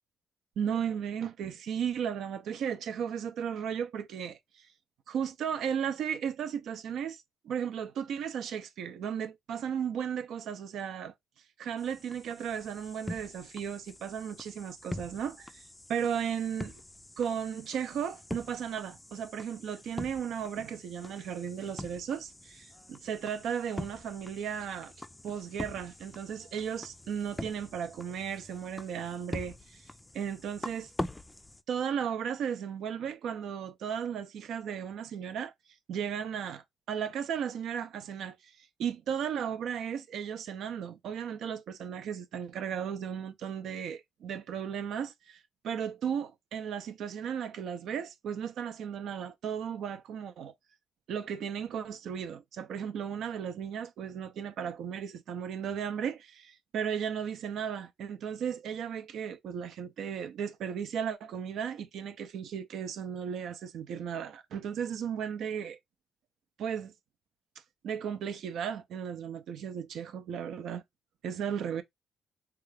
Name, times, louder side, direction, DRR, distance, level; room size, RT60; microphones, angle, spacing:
voice 1, 0.6-4.7 5.1-11.1 11.6-16.8 17.2-24.9 25.2-29.8 30.1-30.9 31.7-35.5 35.9-50.5 51.1-65.8 66.6-66.9 67.8-70.8 71.2-71.8, right 8 dB, 75° right, 0.5 m, -35 dB
sound 1, 11.8-31.6, left 1 dB, 10° left, 0.4 m, -44 dB
3.7 x 2.3 x 3.2 m
cardioid pair, 90°, 0 cm